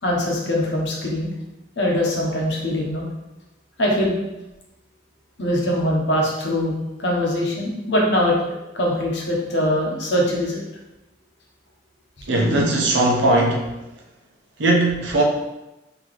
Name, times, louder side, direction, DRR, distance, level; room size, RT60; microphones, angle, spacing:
voice 1, 0.0-1.3 1.8-3.1 3.8-4.2 5.4-8.4 8.7-10.6 12.2-12.3, left 1 dB, 70° left, -2 dB, 1.0 m, -22 dB
voice 2, 12.3-13.7 14.6-15.2, right 1 dB, 80° right, -2 dB, 0.8 m, -18 dB
3.9 x 2.9 x 3.1 m, 1.0 s
head